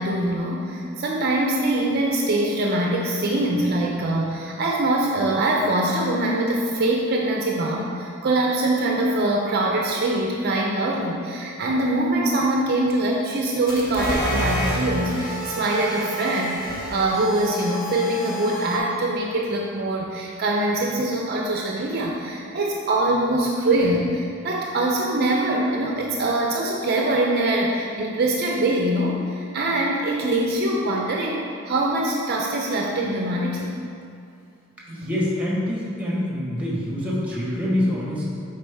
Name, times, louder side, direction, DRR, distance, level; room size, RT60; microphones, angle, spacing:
voice 1, 0.0-33.7, right 1 dB, 50° right, -1 dB, 0.5 m, -23 dB
sound 1, 13.7-18.8, equal, 45° left, 1.2 m, -29 dB
voice 2, 34.9-38.3, left 1 dB, 5° right, -5 dB, 1.4 m, -25 dB
7.5 x 4.7 x 3.5 m, 2.4 s
head